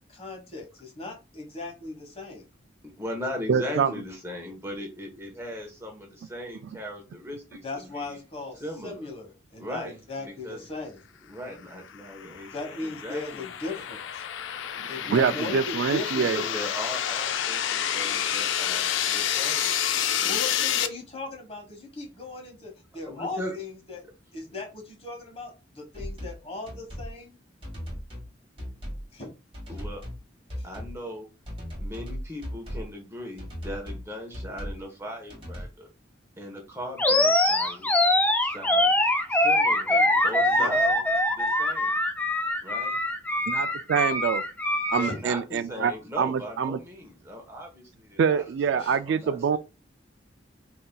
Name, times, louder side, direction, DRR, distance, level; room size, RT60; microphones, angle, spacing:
voice 1, 0.1-2.5 7.6-11.0 12.5-14.2 14.9-16.6 20.2-24.0 24.3-27.4 29.1-29.3 39.9-40.7 45.0-45.2 48.8-49.0, left 2 dB, 35° left, 1.2 m, -38 dB
voice 2, 2.8-8.2 8.6-9.1 9.6-10.6 11.2-13.8 15.0-15.3 16.3-19.8 20.2-20.7 23.1-23.6 29.7-30.0 30.6-31.3 31.8-35.9 36.4-37.9 38.4-39.0 39.3-40.0 40.2-41.9 42.6-42.9 44.9-48.4 48.7-49.6, equal, 15° right, 1.0 m, -38 dB
voice 3, 3.5-3.9 14.8-16.4 43.5-44.4 44.9-45.9 46.2-46.8 48.2-49.6, right 6 dB, 70° right, 0.3 m, -25 dB
sound 1, 11.9-20.9, left 9 dB, 85° left, 0.4 m, -29 dB
sound 2, 25.9-26.4 26.7-27.1 27.6-28.3 28.6-29.1 29.5-30.2 30.5-31.0 31.5-32.9 33.4-34.1 34.3-34.8 35.3-35.7, equal, 30° right, 2.0 m, -37 dB
Animal, 37.0-45.2, left 1 dB, 10° left, 0.3 m, -23 dB
5.5 x 2.7 x 2.2 m
head